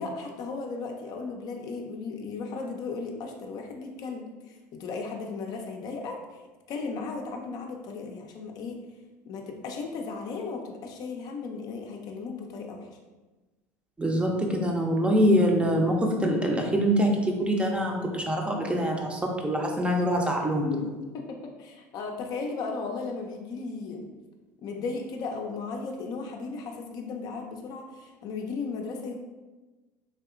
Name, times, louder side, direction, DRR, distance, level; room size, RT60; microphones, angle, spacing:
voice 1, 0.0-6.4 6.7-8.8 9.3-12.9 21.1-24.1 24.6-29.1, left 4 dB, 55° left, 3 dB, 0.5 m, -36 dB
voice 2, 14.0-20.9, equal, 15° right, 1 dB, 0.6 m, -24 dB
3.4 x 2.7 x 2.5 m, 1.2 s
hypercardioid pair, 85°, 8 cm